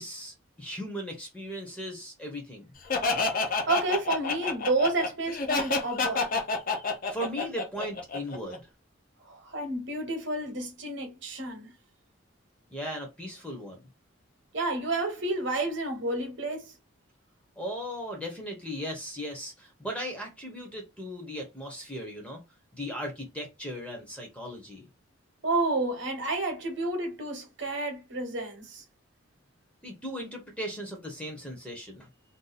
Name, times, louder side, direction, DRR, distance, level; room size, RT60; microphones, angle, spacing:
voice 1, 0.0-2.7 7.1-8.6 12.7-13.8 17.6-22.4 22.7-24.9 29.8-32.1, equal, 5° left, 0.7 m, -37 dB
Laughter, 2.9-8.6, left 3 dB, 40° left, 0.6 m, -28 dB
voice 2, 3.7-6.3 9.2-11.7 14.5-16.7 25.4-28.8, right 2 dB, 55° right, 1.0 m, -30 dB
2.6 x 2.3 x 4.0 m
head